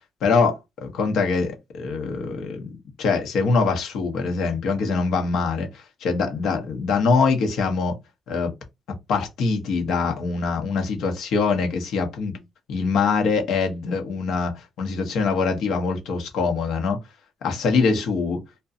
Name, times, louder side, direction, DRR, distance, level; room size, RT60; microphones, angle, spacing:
voice 1, 0.2-8.0 8.3-8.5 8.9-12.4 12.7-17.0 17.4-18.4, left 4 dB, 80° left, 0.8 m, -23 dB
2.6 x 2.2 x 2.4 m
cardioid pair, 90°, 0 cm